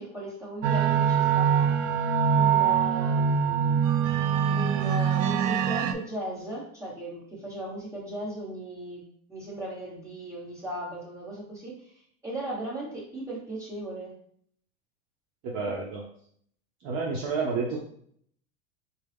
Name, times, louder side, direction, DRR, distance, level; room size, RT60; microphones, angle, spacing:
voice 1, 0.0-1.8 2.3-3.8 4.5-11.9 12.2-14.1, right 1 dB, 10° right, -7 dB, 1.5 m, -37 dB
sound 1, 0.6-5.9, right 7 dB, 80° right, 0.5 m, -23 dB
voice 2, 15.4-16.0 16.8-17.8, right 4 dB, 50° right, -3 dB, 0.8 m, -30 dB
4.3 x 2.3 x 3.5 m, 0.62 s
supercardioid pair, 145°, 38 cm